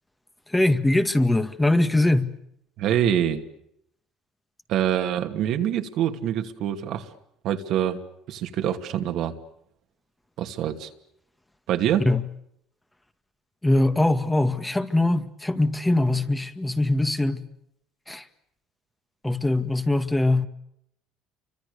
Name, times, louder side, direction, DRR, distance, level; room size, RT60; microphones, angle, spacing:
voice 1, 0.5-2.3 12.1-12.2 13.6-17.4 18.1-18.3 19.2-20.5, left 2 dB, 10° left, 1.9 m, -22 dB
voice 2, 2.8-3.4 4.7-7.1 7.4-8.0 8.3-9.4 10.4-10.9 11.7-12.1, right 10 dB, 65° right, 2.5 m, -25 dB
29.5 x 25.0 x 6.9 m
supercardioid pair, 90°, 0 cm